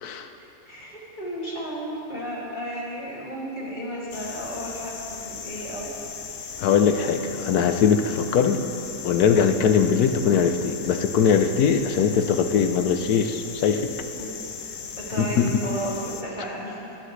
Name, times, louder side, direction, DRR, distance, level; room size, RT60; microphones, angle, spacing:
voice 1, 0.4-5.9 6.3-6.4 14.2-14.4 15.0-17.0, right 1 dB, 30° left, -6 dB, 2.7 m, -34 dB
sound 1, 4.1-16.2, left 6 dB, 60° left, 1.2 m, -37 dB
voice 2, 6.6-8.6 9.0-13.9 15.2-15.6, left 6 dB, 80° left, 7 dB, 1.3 m, -21 dB
21.0 x 11.0 x 3.3 m, 3.0 s
omnidirectional pair, 1.6 m